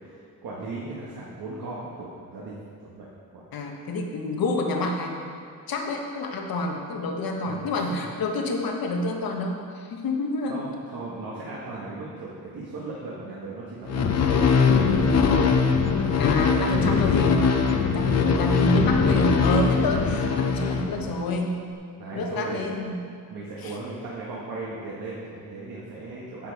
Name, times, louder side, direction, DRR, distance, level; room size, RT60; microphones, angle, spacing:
voice 1, 0.0-3.1 3.3-3.4 7.4-8.0 10.5-15.7 18.0-18.2 19.9-20.1 22.0-22.8 23.3-26.5, right 2 dB, 80° right, -6 dB, 1.6 m, -37 dB
voice 2, 3.5-5.3 5.7-10.7 16.2-21.6 22.1-23.0 23.6-23.8, left 2 dB, 75° left, 2 dB, 1.3 m, -28 dB
sound 1, 13.9-21.3, left 5 dB, 45° left, 0.7 m, -21 dB
9.6 x 7.4 x 4.8 m, 2.3 s
wide cardioid pair, 130°, 36 cm